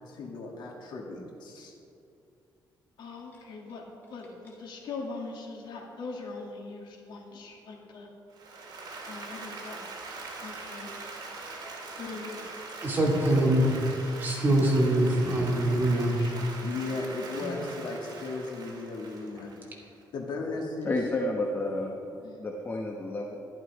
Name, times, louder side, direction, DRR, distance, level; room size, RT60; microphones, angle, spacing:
voice 1, 0.1-1.7 3.0-8.1 9.0-9.8 10.4-10.9 12.0-12.4 13.3-13.5 16.0-19.9 20.1-21.0 22.2-22.5, left 3 dB, 75° left, 0 dB, 2.2 m, -38 dB
Applause, 8.3-20.0, right 3 dB, 60° right, 2.4 m, -42 dB
voice 2, 12.8-13.7 14.2-16.1, right 1 dB, 25° right, -2 dB, 2.4 m, -23 dB
voice 3, 20.8-23.4, left 2 dB, 25° left, 0 dB, 0.9 m, -31 dB
11.5 x 11.5 x 4.8 m, 2.6 s
cardioid pair, 140°, 8 cm